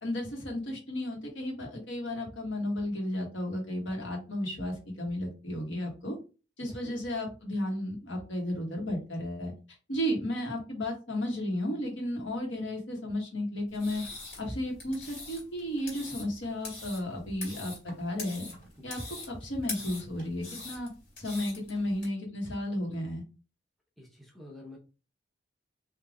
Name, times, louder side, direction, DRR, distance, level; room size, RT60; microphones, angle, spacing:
voice 1, 0.0-6.1 6.6-9.5 9.9-14.0 14.4-18.5 18.8-19.0 19.3-20.9 21.2-23.2, left 1 dB, 80° left, 0 dB, 1.6 m, -33 dB
sound 1, 13.7-22.1, left 3 dB, 45° left, 2.0 m, -43 dB
voice 2, 24.0-24.8, left 2 dB, ahead, -2 dB, 0.8 m, -48 dB
3.5 x 2.8 x 3.7 m, 0.32 s
head